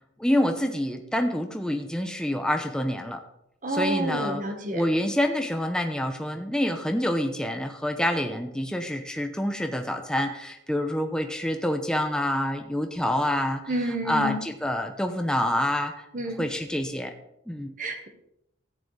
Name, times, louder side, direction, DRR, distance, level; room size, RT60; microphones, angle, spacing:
voice 1, 0.2-3.2 3.7-4.4 4.7-13.6 14.0-16.1 16.4-17.1 17.5-17.7, left 1 dB, 5° left, 5 dB, 0.7 m, -27 dB
voice 2, 3.6-4.8 13.7-14.4 16.1-16.4 17.8-18.1, right 1 dB, 40° right, 5 dB, 1.3 m, -29 dB
14.0 x 9.7 x 3.3 m, 0.80 s
head